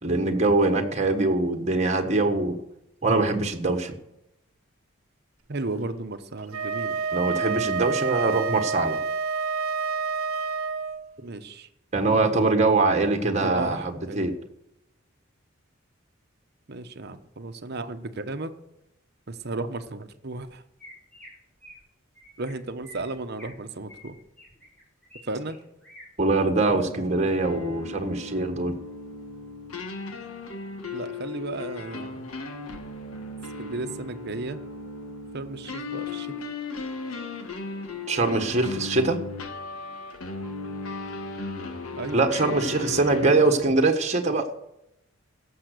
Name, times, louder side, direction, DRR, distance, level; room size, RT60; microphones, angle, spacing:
voice 1, 0.0-2.6 3.0-3.9 7.1-9.0 11.9-14.3 26.2-28.7 38.1-39.2 42.1-44.5, right 3 dB, 30° right, 5 dB, 1.5 m, -23 dB
voice 2, 5.5-7.0 11.2-11.7 13.4-14.3 16.7-18.5 19.3-20.6 22.4-24.2 25.3-25.6 30.9-32.3 33.6-34.6 35.3-36.3 42.0-42.2 43.1-43.2, right 2 dB, 50° right, 8 dB, 1.0 m, -34 dB
Wind instrument woodwind instrument, 6.4-11.1, right 5 dB, 85° right, 0.9 m, -28 dB
Chirp tweet, 20.8-21.3 21.6-21.8 22.2-22.5 22.8-23.5 23.9-25.2 25.5-26.0 26.5-26.7 27.2-27.5, equal, 5° left, 6.4 m, -49 dB
sound 1, 26.7-43.6, left 3 dB, 90° left, 1.6 m, -37 dB
17.0 x 7.3 x 6.6 m, 0.84 s
head